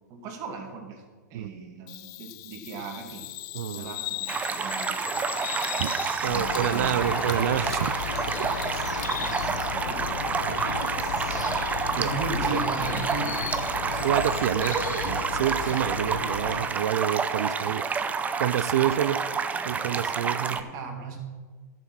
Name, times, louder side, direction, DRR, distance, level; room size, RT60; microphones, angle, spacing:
voice 1, 0.1-1.0 1.3-3.3 3.7-5.0 6.2-7.2 9.2-10.5 11.9-13.5 14.7-15.0 20.5-21.2, right 4 dB, 35° right, 2 dB, 2.4 m, -37 dB
Bird vocalization bird call bird song, 1.9-9.4, left 17 dB, 35° left, 0.5 m, -39 dB
voice 2, 3.5-3.9 5.8-6.0 6.2-8.0 8.4-8.5 10.5-11.0 12.0-12.2 12.5-12.6 13.9-14.8 15.1-17.9 18.4-19.2 19.6-20.6, right 11 dB, 60° right, 15 dB, 0.5 m, -28 dB
sound 1, 4.3-20.6, right 5 dB, 15° right, 0.6 m, -29 dB
sound 2, 6.2-16.7, left 7 dB, 70° left, 0.9 m, -34 dB
12.5 x 6.7 x 6.1 m, 1.5 s
hypercardioid pair, 110°, 10 cm